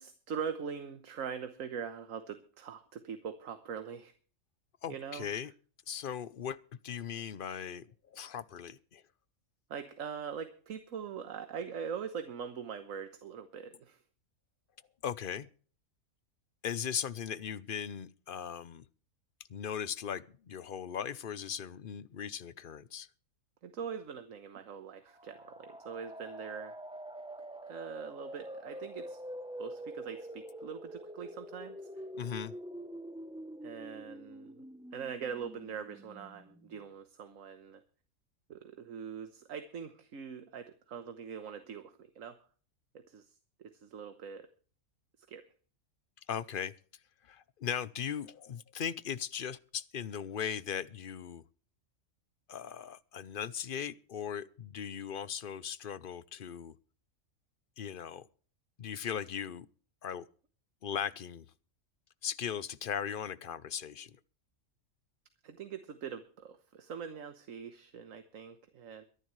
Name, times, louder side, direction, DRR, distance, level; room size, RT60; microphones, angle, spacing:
voice 1, 0.0-4.1 4.9-5.3 9.7-14.0 23.6-26.8 27.7-29.2 29.6-32.0 33.6-34.6 34.9-37.8 38.5-42.4 42.9-44.5 45.3-45.5 65.4-69.0, right 7 dB, 75° right, 1.5 m, -42 dB
voice 2, 4.8-5.5 5.9-6.6 6.8-9.0 15.0-15.5 16.6-18.9 19.5-23.1 32.2-32.5 46.3-46.7 47.2-51.4 52.5-56.7 57.8-58.3 58.8-59.7 60.0-60.3 60.8-61.5 62.2-64.2, left 8 dB, 50° left, 0.8 m, -38 dB
sound 1, 25.1-36.8, right 1 dB, 5° right, 0.6 m, -46 dB
23.5 x 11.0 x 3.2 m
omnidirectional pair, 1.4 m